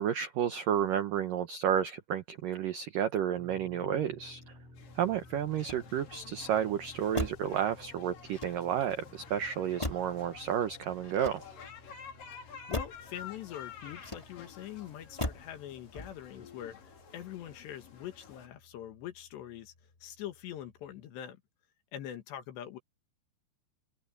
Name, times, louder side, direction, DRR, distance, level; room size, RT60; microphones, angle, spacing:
voice 1, 0.0-4.4 5.0-11.5, right 9 dB, 85° right, 1.9 m, -31 dB
sound 1, 3.4-21.0, left 2 dB, 85° left, 9.0 m, -57 dB
sound 2, 4.8-18.5, left 6 dB, 50° left, 4.5 m, -51 dB
Motor vehicle (road), 5.5-6.3 7.1-7.6 8.2-8.9 9.8-10.3 11.0-11.8 12.7-13.1 14.0-14.6 15.2-15.6 15.9-16.4, left 1 dB, 10° left, 1.5 m, -39 dB
voice 2, 12.4-19.7 20.0-21.4 21.9-22.8, left 11 dB, 70° left, 3.6 m, -43 dB
omnidirectional pair, 5.5 m